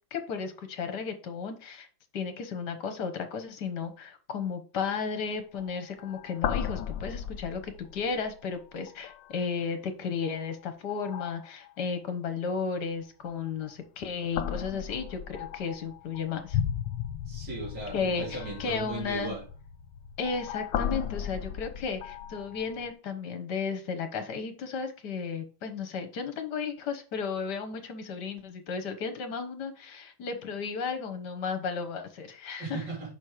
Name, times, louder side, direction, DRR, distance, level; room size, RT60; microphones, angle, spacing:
voice 1, 0.1-1.9 2.1-16.6 17.9-19.3 20.2-32.8, left 5 dB, 60° left, 1.5 m, -34 dB
sound 1, 5.1-5.2 5.6-5.7 6.0-8.4 8.9-9.4 10.2-10.5 10.9-11.7 13.2-13.7 14.3-22.9, left 9 dB, 80° left, 1.3 m, -36 dB
voice 2, 17.3-19.4 32.6-33.1, right 3 dB, 65° right, 3.3 m, -37 dB
6.1 x 4.2 x 4.9 m
omnidirectional pair, 2.1 m